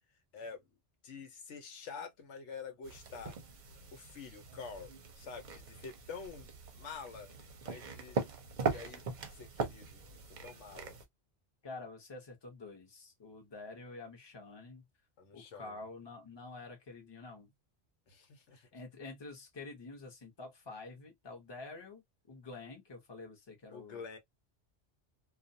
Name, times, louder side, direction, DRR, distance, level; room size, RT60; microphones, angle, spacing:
voice 1, 1.0-3.3 3.9-4.9 5.2-6.5 6.7-7.3 7.6-8.2 8.6-9.0 9.3-11.0 15.2-15.7 18.1-18.6 23.7-24.2, left 5 dB, 85° left, 1.1 m, -47 dB
sound 1, 2.8-11.0, right 5 dB, 50° right, 0.7 m, -41 dB
voice 2, 11.6-14.8 15.3-17.5 18.5-22.0 22.3-24.2, left 3 dB, 25° left, 0.8 m, -48 dB
2.4 x 2.3 x 2.6 m
omnidirectional pair, 1.2 m